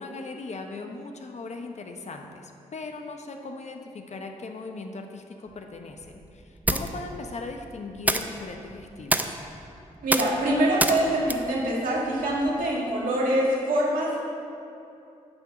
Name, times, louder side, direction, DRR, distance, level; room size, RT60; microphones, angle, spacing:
voice 1, 0.0-9.4, left 3 dB, 50° left, 4 dB, 0.9 m, -39 dB
sound 1, 5.5-12.7, right 1 dB, 10° right, 0.5 m, -31 dB
voice 2, 10.0-14.2, right 1 dB, 75° right, -4 dB, 1.8 m, -24 dB
8.8 x 3.8 x 6.4 m, 2.7 s
supercardioid pair, 45°, 14 cm